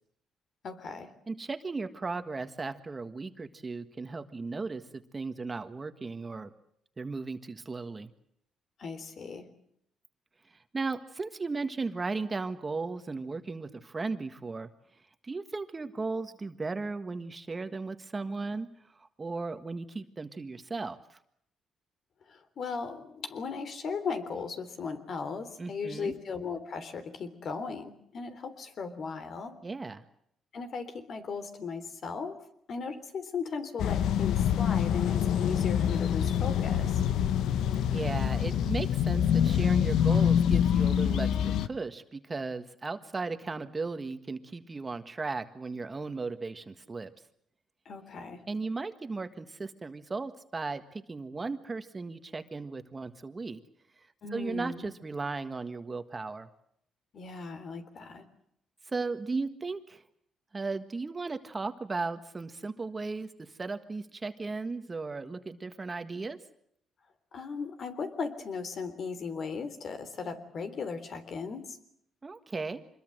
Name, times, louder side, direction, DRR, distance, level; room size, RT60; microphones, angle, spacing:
voice 1, 0.6-1.1 8.8-9.5 22.3-29.6 30.5-32.4 32.7-37.0 47.9-48.4 54.2-54.9 57.1-58.3 67.3-71.8, left 5 dB, 55° left, 10 dB, 3.5 m, -37 dB
voice 2, 1.3-6.5 7.0-8.1 10.5-14.7 15.2-18.7 18.9-21.2 25.6-26.1 29.6-30.0 37.9-47.1 48.5-53.6 54.0-56.5 58.9-60.0 60.5-66.4 72.2-72.8, right 3 dB, 25° right, 9 dB, 1.6 m, -36 dB
sound 1, 33.8-41.7, left 9 dB, 80° left, 1.0 m, -26 dB
26.0 x 21.5 x 7.9 m, 0.71 s
cardioid pair, 90°, 0 cm